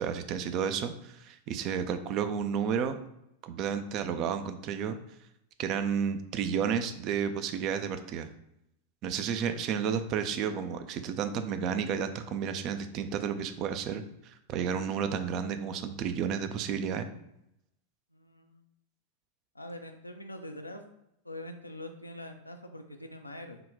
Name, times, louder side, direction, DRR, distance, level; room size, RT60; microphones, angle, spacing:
voice 1, 0.0-3.0 3.4-5.0 5.6-8.3 9.0-17.1, right 7 dB, 40° right, 9 dB, 0.3 m, -32 dB
voice 2, 18.1-18.7 19.5-20.8 21.2-23.6, left 1 dB, 85° left, 6 dB, 0.4 m, -43 dB
3.7 x 2.2 x 3.6 m, 0.80 s
figure-of-eight pair, 90°, 0 cm